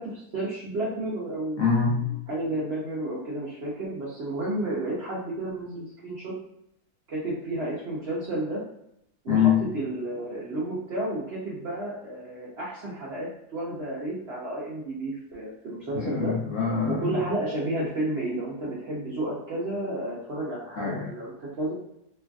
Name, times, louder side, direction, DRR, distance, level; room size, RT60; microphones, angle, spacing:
voice 1, 0.0-1.6 2.3-6.3 7.1-8.6 9.2-16.3 16.9-21.7, right 1 dB, 60° right, -7 dB, 0.7 m, -31 dB
voice 2, 1.6-2.1 9.3-9.6 15.9-17.2 20.8-21.1, left 6 dB, 60° left, -4 dB, 1.0 m, -24 dB
3.1 x 2.4 x 2.2 m, 0.78 s
omnidirectional pair, 1.7 m